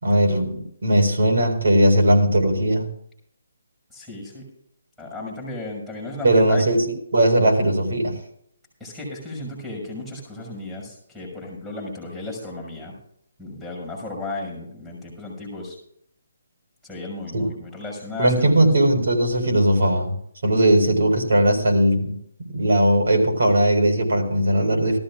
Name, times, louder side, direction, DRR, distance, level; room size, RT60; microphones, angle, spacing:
voice 1, 0.0-2.9 6.2-8.2 17.3-17.5 18.2-20.1 20.4-22.1 22.5-25.0, right 1 dB, 65° right, 2 dB, 4.8 m, -19 dB
voice 2, 3.9-4.4 5.0-6.6 8.8-13.0 13.4-15.8 16.8-18.3 18.6-18.7, left 2 dB, 5° right, -6 dB, 5.8 m, -34 dB
19.5 x 14.0 x 2.5 m, 0.69 s
hypercardioid pair, 170°, 0 cm